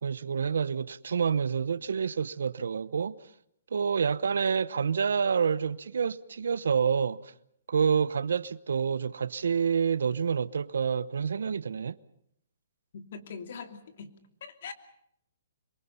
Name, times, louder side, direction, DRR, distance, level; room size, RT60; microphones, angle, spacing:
voice 1, 0.0-3.1 3.7-7.3 7.7-12.0, right 6 dB, 85° right, 0.9 m, -28 dB
voice 2, 12.9-14.2 14.4-14.7, left 5 dB, 55° left, 2.8 m, -42 dB
26.5 x 23.5 x 5.7 m
hypercardioid pair, 160°, 0 cm